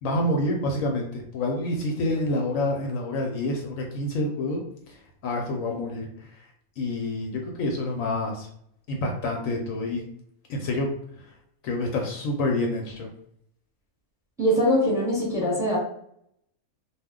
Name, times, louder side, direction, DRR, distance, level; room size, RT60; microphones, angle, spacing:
voice 1, 0.0-4.6 4.9-5.0 5.2-6.4 6.8-8.5 8.9-10.0 10.5-10.9 11.6-13.1, left 1 dB, 70° left, 1 dB, 0.9 m, -27 dB
voice 2, 14.4-15.8, equal, 5° right, -4 dB, 0.8 m, -22 dB
2.4 x 2.1 x 3.5 m, 0.69 s
omnidirectional pair, 1.5 m